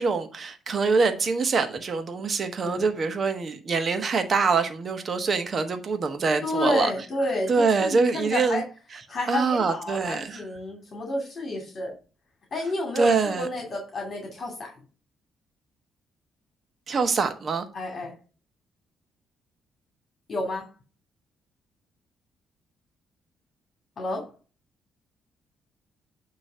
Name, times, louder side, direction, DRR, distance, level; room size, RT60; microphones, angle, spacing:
voice 1, 0.0-6.9 7.5-8.6 9.3-10.4 13.0-13.5 16.9-17.7, right 4 dB, 45° right, 1.3 m, -24 dB
voice 2, 2.6-3.0 6.4-8.6 9.1-11.9 12.5-14.7 17.7-18.1 20.3-20.7 24.0-24.3, left 1 dB, 45° left, 2.4 m, -30 dB
9.2 x 3.1 x 6.1 m
cardioid pair, 90°, 0 cm